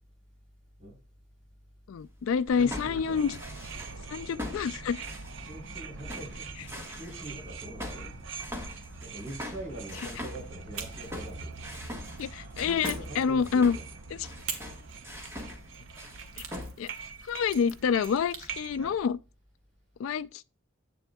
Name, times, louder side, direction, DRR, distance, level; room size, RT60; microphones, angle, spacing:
voice 1, 1.9-3.4 4.1-5.0 12.2-13.8 16.4-16.5 16.8-16.9 17.2-19.2 20.0-20.4, left 6 dB, 70° left, 0.3 m, -27 dB
sound 1, 2.2-4.0 4.4-5.8 6.1-7.2 7.8-15.7 16.0-16.2 16.5-16.7, left 1 dB, 10° right, 1.4 m, -42 dB
sound 2, 2.5-19.0, right 4 dB, 60° right, 0.6 m, -43 dB
voice 2, 2.6-3.2 5.4-8.2 9.0-11.8 12.5-13.8, right 1 dB, 35° right, 4.3 m, -44 dB
sound 3, 10.7-12.3 12.8-13.9 14.5-18.5, right 6 dB, 80° right, 1.1 m, -44 dB
7.7 x 7.1 x 2.2 m
head